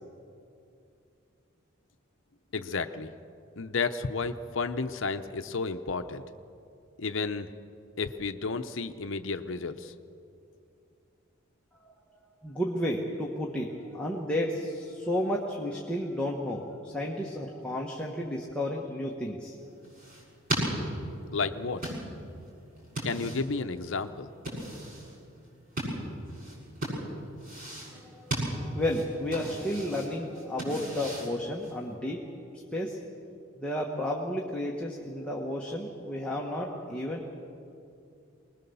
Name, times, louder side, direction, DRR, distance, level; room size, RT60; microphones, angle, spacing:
voice 1, 2.5-3.1 3.6-6.2 7.0-7.5 8.0-9.9 21.3-21.8 23.0-24.3, left 4 dB, 70° left, 8 dB, 0.8 m, -32 dB
voice 2, 12.4-19.6 28.1-32.3 32.7-33.0 33.6-37.3, left 1 dB, 5° left, -2 dB, 1.4 m, -32 dB
Leather Couch Foley, 19.6-31.9, right 1 dB, 40° right, 7.0 m, -37 dB
24.5 x 20.5 x 7.0 m, 2.6 s
head